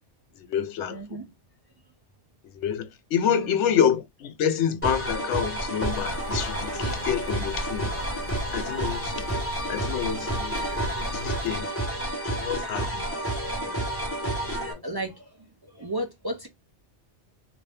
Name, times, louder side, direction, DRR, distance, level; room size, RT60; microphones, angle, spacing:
voice 1, 0.4-1.2 2.5-7.9 8.5-9.2 9.7-11.7 12.2-13.0 13.5-13.8 14.3-14.8, left 8 dB, 90° left, 0.9 m, -28 dB
voice 2, 0.9-1.2 3.3-3.6 14.8-16.5, right 1 dB, 30° right, 0.4 m, -34 dB
sound 1, 4.8-14.7, right 1 dB, 10° left, 1.2 m, -30 dB
sound 2, 5.8-11.6, left 2 dB, 45° left, 0.5 m, -38 dB
2.7 x 2.6 x 3.3 m
omnidirectional pair, 1.2 m